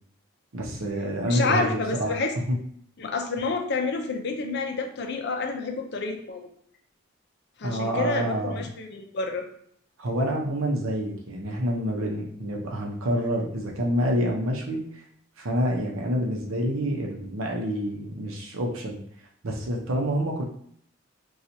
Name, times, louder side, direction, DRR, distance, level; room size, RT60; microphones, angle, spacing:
voice 1, 0.5-2.2 2.5-2.6 7.6-8.7 10.0-15.0 15.4-19.0 19.4-20.4, equal, 80° right, 0 dB, 0.7 m, -27 dB
voice 2, 1.2-2.3 3.0-6.5 7.6-9.5, left 3 dB, 55° left, 4 dB, 0.5 m, -29 dB
4.3 x 2.4 x 2.7 m, 0.65 s
head